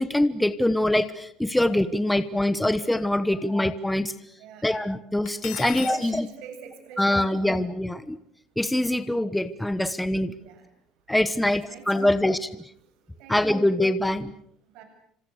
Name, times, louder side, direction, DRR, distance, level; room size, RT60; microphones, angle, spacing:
voice 1, 0.0-4.1 4.6-6.2 7.0-8.2 8.6-10.3 11.1-12.4 13.3-14.3, left 1 dB, 5° left, 12 dB, 1.2 m, -24 dB
voice 2, 3.2-3.6 4.4-4.8 5.6-7.6 10.4-10.6 11.4-12.3 13.2-13.7 14.7-14.8, right 8 dB, 75° right, 5 dB, 7.8 m, -44 dB
Cutlery silverware, 5.3-6.0, left 18 dB, 70° left, 1.2 m, -36 dB
30.0 x 26.0 x 6.6 m, 0.69 s
cardioid pair, 160°, 0 cm